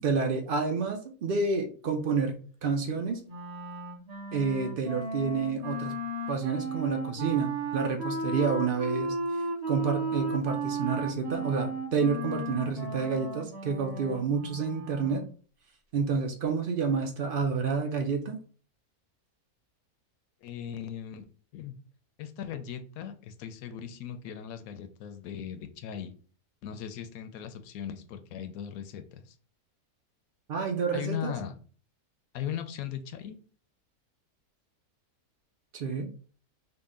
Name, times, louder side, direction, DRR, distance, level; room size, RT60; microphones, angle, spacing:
voice 1, 0.0-3.2 4.3-6.0 6.3-9.2 9.7-15.2 15.9-18.4 30.5-31.3 35.7-36.1, right 5 dB, 80° right, 4 dB, 0.4 m, -29 dB
Wind instrument woodwind instrument, 3.3-15.3, right 2 dB, 30° right, 1.3 m, -35 dB
voice 2, 20.4-21.2 21.5-21.7 22.2-26.1 26.6-29.4 30.9-31.6 32.3-33.4, left 9 dB, 75° left, 9 dB, 1.0 m, -38 dB
3.8 x 2.2 x 3.7 m, 0.40 s
omnidirectional pair, 1.6 m